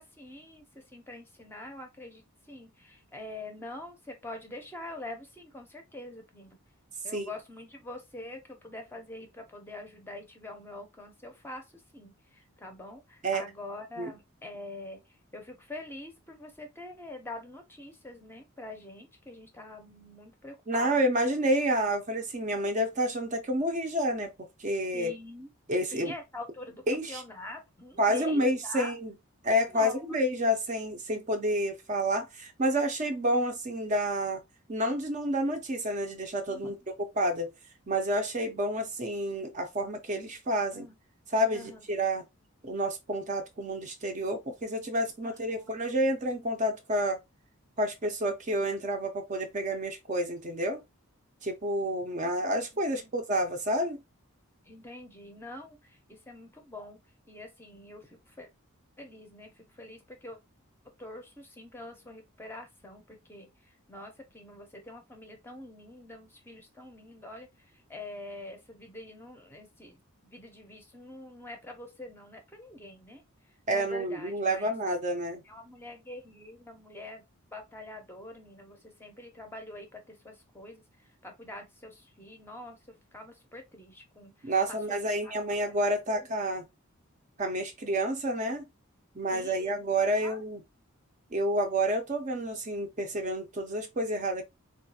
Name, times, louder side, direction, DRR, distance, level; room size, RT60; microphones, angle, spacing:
voice 1, 0.0-6.6 7.0-15.0 15.3-21.0 24.9-25.5 25.9-28.9 29.7-30.0 36.5-36.8 40.7-41.0 41.5-41.8 45.2-45.7 52.9-53.1 54.7-57.0 57.3-58.5 59.0-60.4 61.0-63.5 63.9-73.2 73.7-74.7 75.5-77.2 77.5-80.8 81.2-82.8 83.1-85.0 85.2-85.3 86.1-86.3 89.3-89.7 90.2-90.4, left 1 dB, 10° left, 0.6 m, -45 dB
voice 2, 20.7-24.3 24.6-25.1 25.7-26.1 26.9-27.2 28.0-29.1 29.4-34.4 34.7-36.8 37.2-37.5 37.9-40.9 41.3-42.2 42.6-47.2 47.8-50.8 51.4-54.0 73.7-75.4 84.4-86.7 87.4-88.7 89.2-90.6 91.3-94.4, right 1 dB, 35° right, 0.5 m, -29 dB
3.8 x 2.3 x 2.7 m
head